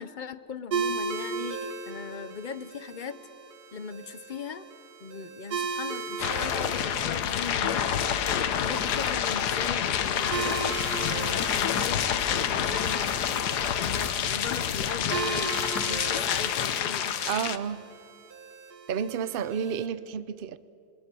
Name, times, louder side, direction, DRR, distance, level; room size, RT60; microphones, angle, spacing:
voice 1, 0.0-3.2 3.7-4.7 5.0-7.9 8.5-17.2, left 6 dB, 45° left, 0.6 m, -39 dB
sound 1, 0.7-19.9, right 5 dB, 75° right, 1.9 m, -37 dB
sound 2, 6.2-17.6, left 8 dB, 90° left, 1.5 m, -28 dB
voice 2, 17.2-17.8 18.9-20.6, right 7 dB, 45° right, 0.7 m, -31 dB
27.0 x 22.5 x 6.9 m
omnidirectional pair, 1.7 m